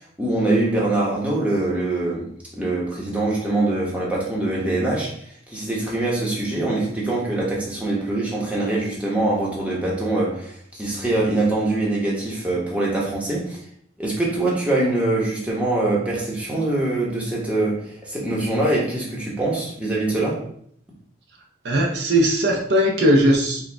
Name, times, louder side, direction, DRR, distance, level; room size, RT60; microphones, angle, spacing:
voice 1, 0.2-2.3 2.5-5.1 5.5-13.6 14.0-20.4, right 2 dB, 5° right, -5 dB, 0.9 m, -23 dB
voice 2, 21.6-23.6, equal, 65° right, 0 dB, 0.6 m, -18 dB
4.8 x 2.2 x 3.3 m, 0.64 s
head